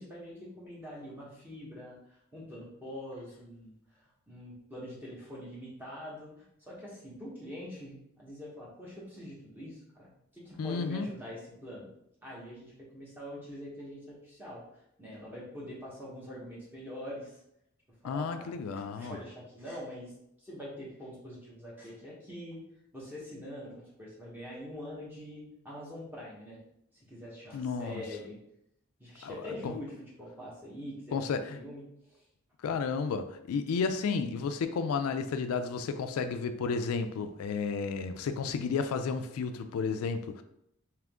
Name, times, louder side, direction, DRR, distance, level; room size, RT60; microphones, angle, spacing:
voice 1, 0.0-11.9 12.2-17.4 18.0-20.1 20.4-22.6 22.9-26.6 27.1-28.4 29.0-31.3 31.5-32.2, left 1 dB, 10° right, -6 dB, 1.1 m, -44 dB
voice 2, 10.6-11.1 18.0-19.2 27.5-28.0 29.2-29.4 29.6-29.7 31.1-31.6 32.6-40.4, left 5 dB, 80° left, 9 dB, 0.3 m, -32 dB
3.6 x 2.9 x 3.5 m, 0.78 s
head